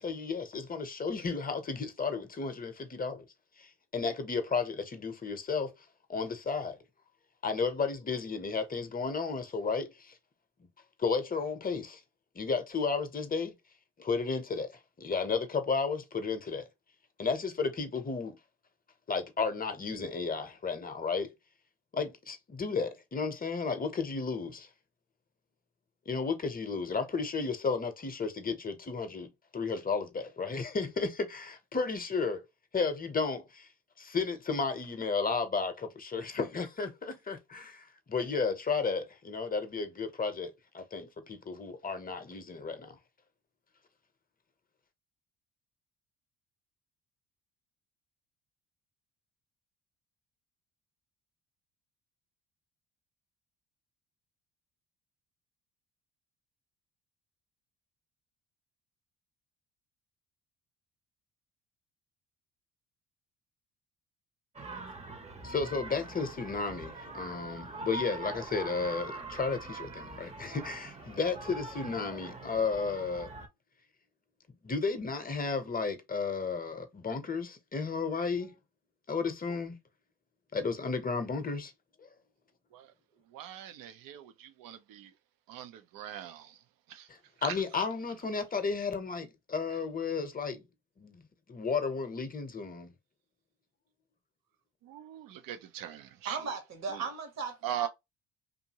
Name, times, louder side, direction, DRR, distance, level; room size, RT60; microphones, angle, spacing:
voice 1, 0.0-3.2 3.6-5.7 6.1-6.8 7.4-10.1 11.0-12.0 12.3-13.6 14.0-14.7 15.0-16.6 17.2-18.4 19.1-21.3 21.9-24.7 26.1-32.4 32.7-33.7 34.0-43.0 65.4-73.3 74.6-78.6 79.1-79.7 80.5-81.7 82.0-82.1 87.1-90.6 91.0-91.2 91.5-92.9, left 4 dB, 25° left, 0.8 m, -33 dB
sound 1, 64.6-73.5, right 2 dB, 20° right, 0.8 m, -43 dB
voice 2, 83.3-85.1 85.5-86.5 86.9-87.1 87.4-87.6 94.9-96.4 97.6-97.9, right 11 dB, 70° right, 0.7 m, -40 dB
voice 3, 96.2-97.9, right 5 dB, 50° right, 1.1 m, -37 dB
2.6 x 2.5 x 2.9 m
supercardioid pair, 70°, 36 cm